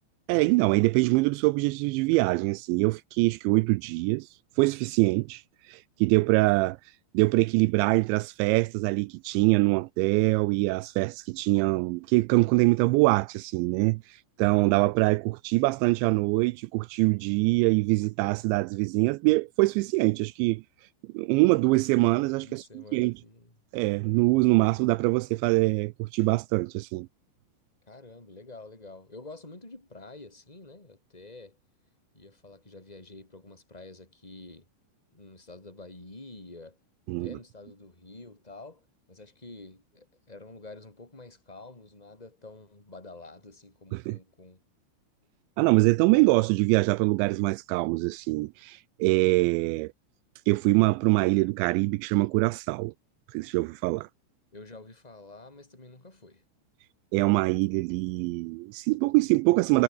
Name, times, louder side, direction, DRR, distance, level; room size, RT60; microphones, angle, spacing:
voice 1, 0.3-4.3 4.6-5.4 5.7-6.8 7.1-20.6 21.1-23.1 23.7-27.1 37.1-37.3 43.9-44.2 45.6-49.9 50.5-52.9 53.3-54.1 57.1-59.8, right 23 dB, 85° right, 2.6 m, -24 dB
voice 2, 22.4-23.6 27.8-31.6 32.1-34.7 35.1-36.8 37.2-44.6 54.5-56.4, left 2 dB, 10° left, 4.4 m, -48 dB
omnidirectional pair, 5.7 m